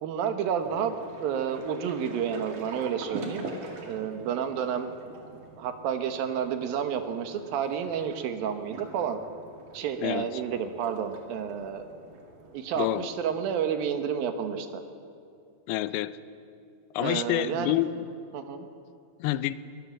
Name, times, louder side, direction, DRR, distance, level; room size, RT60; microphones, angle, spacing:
voice 1, 0.0-0.9 1.2-3.5 3.9-4.9 5.6-9.2 9.7-11.9 12.5-14.7 17.0-17.8 18.3-18.6, right 8 dB, 75° right, 8 dB, 2.9 m, -30 dB
sound 1, 0.6-13.2, right 3 dB, 60° right, 3.6 m, -45 dB
voice 2, 10.0-10.4 12.8-13.1 15.7-16.2 16.9-18.0 19.2-19.5, left 14 dB, 90° left, 15 dB, 2.6 m, -28 dB
23.0 x 18.5 x 7.4 m, 2.6 s
omnidirectional pair, 4.4 m